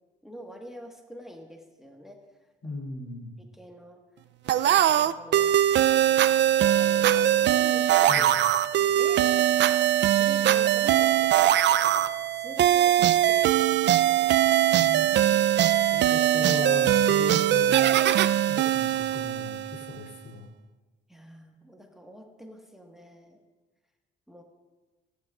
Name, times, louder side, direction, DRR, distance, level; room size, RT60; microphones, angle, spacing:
voice 1, 0.2-2.2 2.6-2.8 3.4-4.0 4.5-6.1 6.6-8.3 8.8-9.5 10.2-11.3 11.8-14.3 21.1-23.4 24.3-24.4, equal, ahead, 1 dB, 1.4 m, -46 dB
voice 2, 2.6-3.3 8.1-8.3 14.8-15.2 15.9-17.9 18.5-20.5, left 2 dB, 65° left, 0 dB, 2.9 m, -37 dB
sound 1, 4.5-20.0, right 12 dB, 65° right, 0.4 m, -21 dB
23.5 x 10.0 x 2.4 m, 1.3 s
cardioid pair, 90°, 20 cm